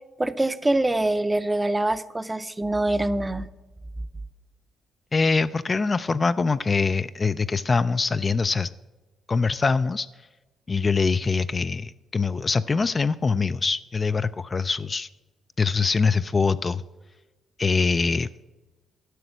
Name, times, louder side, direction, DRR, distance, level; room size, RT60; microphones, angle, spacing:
voice 1, 0.2-3.5, right 2 dB, 15° right, 13 dB, 0.6 m, -24 dB
voice 2, 5.1-8.7 9.3-10.1 10.7-15.1 15.6-16.8 17.6-18.3, left 4 dB, 30° left, 12 dB, 0.3 m, -23 dB
11.0 x 6.1 x 7.9 m, 1.1 s
cardioid pair, 90°, 0 cm